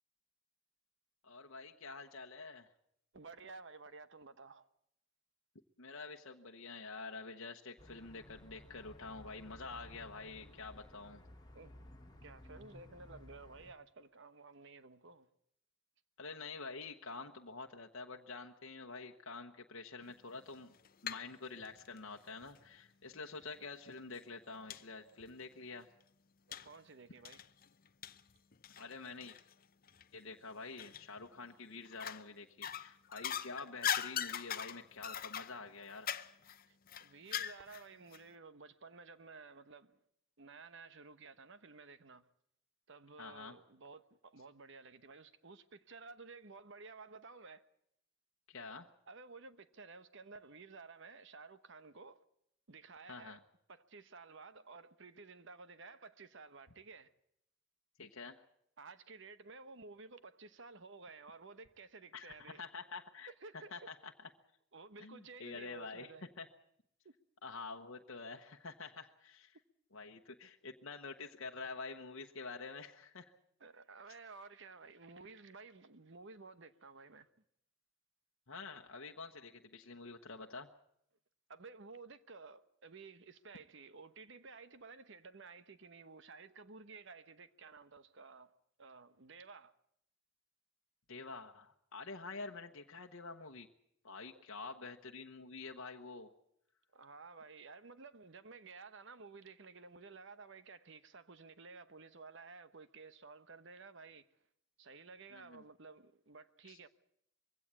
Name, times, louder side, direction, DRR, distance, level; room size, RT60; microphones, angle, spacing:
voice 1, 1.2-2.7 5.8-11.2 16.2-20.7 21.0-25.9 28.8-29.4 30.1-36.1 43.2-43.6 48.5-48.9 53.1-53.4 58.0-58.4 62.1-64.1 65.0-66.1 66.4-66.5 67.4-69.6 69.9-73.3 74.1-74.2 78.5-80.7 91.1-93.7 94.0-96.3 105.3-105.6 106.6-106.8, left 4 dB, 65° left, 1.1 m, -48 dB
voice 2, 3.1-4.7 11.5-11.7 12.2-15.3 20.0-20.2 26.5-27.4 36.7-40.0 40.4-42.2 42.9-47.7 49.1-52.2 52.7-53.4 53.7-57.1 58.8-62.6 63.3-63.9 64.7-66.2 67.0-67.1 73.6-77.3 81.5-88.5 88.8-89.7 94.3-94.7 96.9-104.3 104.8-106.9, right 4 dB, 60° right, 1.0 m, -54 dB
sound 1, 7.8-13.7, left 1 dB, 20° left, 1.8 m, -56 dB
sound 2, 20.5-21.3 21.6-22.7 23.4-23.5 24.0-24.1 24.7-24.8 25.2-25.3 26.5-26.8 27.3-29.5 29.9-30.0 30.8-31.3 31.9-32.3 32.6-37.9 38.1-38.2, left 9 dB, 45° left, 0.7 m, -41 dB
22.0 x 16.5 x 8.3 m
head